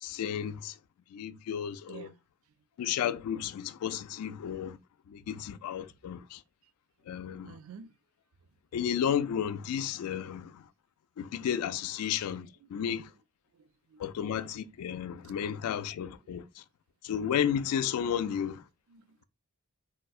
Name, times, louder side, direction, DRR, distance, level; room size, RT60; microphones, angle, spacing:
voice 1, 0.0-0.8 1.1-2.1 2.8-4.8 5.1-6.4 7.1-7.5 8.7-10.7 11.2-13.1 14.0-16.6 17.0-18.6, left 8 dB, 85° left, 0.3 m, -33 dB
voice 2, 1.8-2.1 6.6-6.7 7.0-8.0 12.6-13.1 13.5-14.1 16.2-16.4 18.9-19.2, right 6 dB, 65° right, 0.4 m, -52 dB
4.3 x 2.0 x 2.3 m
head